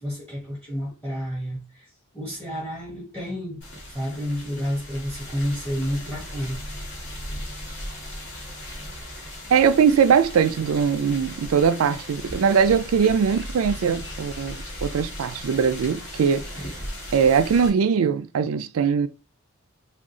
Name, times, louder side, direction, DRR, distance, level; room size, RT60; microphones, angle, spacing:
voice 1, 0.0-1.9 2.1-6.6, equal, 10° left, 1.2 m, -30 dB
sound 1, 3.6-17.7, left 1 dB, 55° left, 1.8 m, -37 dB
voice 2, 9.5-16.5 17.1-19.1, right 6 dB, 80° right, 0.4 m, -21 dB
3.7 x 2.3 x 3.7 m
head